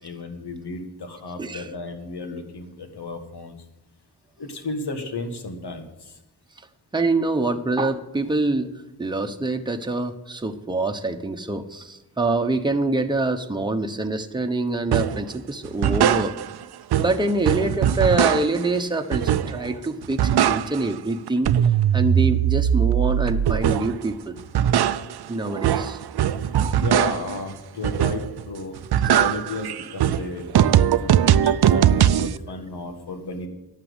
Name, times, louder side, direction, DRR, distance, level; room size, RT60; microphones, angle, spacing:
voice 1, 0.0-3.5 4.4-5.9 26.7-30.4 31.0-33.5, left 2 dB, 85° left, 5 dB, 1.9 m, -33 dB
voice 2, 6.9-8.7 9.0-16.3 17.0-21.5 21.9-24.3 25.3-26.0 26.5-26.8, right 2 dB, 10° right, 5 dB, 1.1 m, -25 dB
sound 1, 14.9-15.2 15.6-16.6 16.9-18.7 19.1-19.7 20.0-21.0 21.3-24.0 24.4-27.4 27.8-28.4 28.7-32.4, right 10 dB, 80° right, 0.6 m, -20 dB
12.0 x 7.5 x 8.1 m, 0.96 s
cardioid pair, 60°, 39 cm